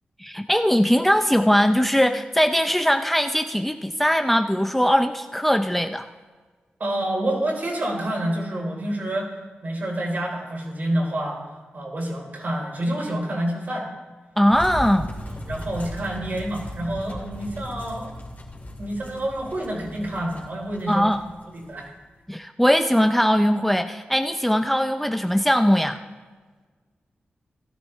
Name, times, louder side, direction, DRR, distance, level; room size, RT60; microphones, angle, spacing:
voice 1, 0.2-6.1 14.4-15.1 20.9-21.2 22.3-26.0, equal, 5° left, 7 dB, 0.5 m, -20 dB
voice 2, 6.8-9.3 9.6-11.4 11.7-13.9 15.3-18.1 18.8-21.1 21.5-21.9, right 1 dB, 55° right, -1 dB, 3.7 m, -28 dB
sound 1, 14.5-22.1, left 1 dB, 50° left, 2.5 m, -37 dB
16.5 x 12.5 x 3.2 m, 1.4 s
wide cardioid pair, 80°, 4 cm